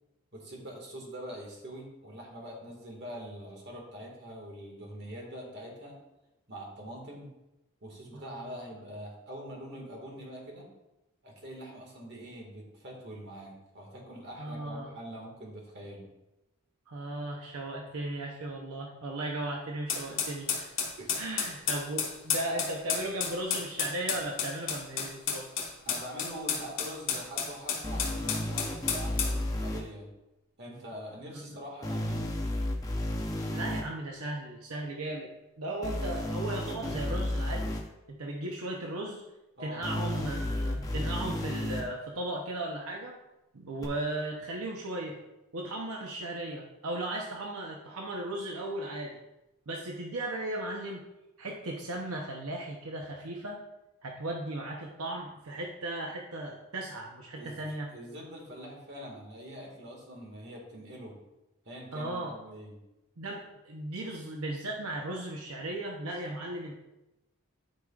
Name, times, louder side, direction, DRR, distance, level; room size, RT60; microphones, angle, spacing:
voice 1, 0.3-6.0 6.5-7.3 7.8-10.7 11.2-16.1 21.0-21.2 25.9-30.1 30.6-32.4 39.6-39.8 57.4-57.6 57.9-61.2 61.7-62.8, equal, 50° right, -1 dB, 1.8 m, -44 dB
voice 2, 8.1-8.6 14.4-14.9 16.9-20.7 21.2-25.5 31.3-31.4 33.5-37.7 38.1-39.2 39.6-43.2 43.5-45.2 45.5-49.2 49.7-51.0 51.4-53.6 54.0-57.9 61.9-62.3 63.2-66.8, right 1 dB, 80° right, 0 dB, 0.8 m, -36 dB
sound 1, 19.9-29.4, left 6 dB, 60° left, 2.1 m, -32 dB
sound 2, 27.8-29.8 31.8-33.8 35.8-37.8 39.8-41.8 43.8-43.9, left 1 dB, 15° left, 0.7 m, -32 dB
12.0 x 4.9 x 2.4 m, 0.97 s
head